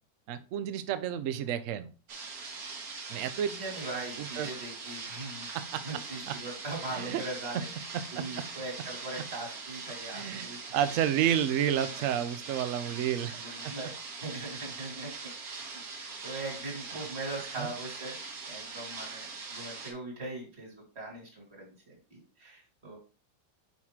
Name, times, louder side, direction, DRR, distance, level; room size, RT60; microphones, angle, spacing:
voice 1, 0.3-1.9 3.1-3.5 4.2-4.5 5.5-5.8 6.3-6.4 6.9-7.2 7.5-7.6 7.9-8.4 10.1-13.7 17.6-17.7, right 10 dB, 80° right, 12 dB, 0.7 m, -31 dB
sound 1, 2.1-19.9, right 4 dB, 55° right, 1.5 m, -42 dB
voice 2, 3.4-5.5 5.8-7.7 8.1-10.8 13.3-13.9 14.2-15.1 16.2-18.2 18.5-23.0, right 2 dB, 35° right, 0 dB, 2.4 m, -40 dB
5.6 x 4.7 x 3.6 m, 0.35 s
omnidirectional pair, 2.0 m